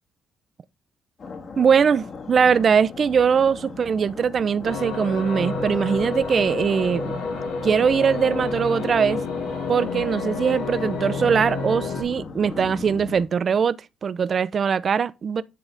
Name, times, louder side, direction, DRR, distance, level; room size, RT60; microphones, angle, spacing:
sound 1, 1.2-13.2, left 4 dB, 50° left, 1.8 m, -38 dB
voice 1, 1.6-7.1 7.6-9.2 9.7-13.8 14.0-15.4, right 6 dB, 50° right, 0.5 m, -21 dB
sound 2, 4.6-12.0, left 4 dB, 85° left, 2.2 m, -29 dB
11.0 x 3.9 x 3.5 m
cardioid pair, 90°, 0 cm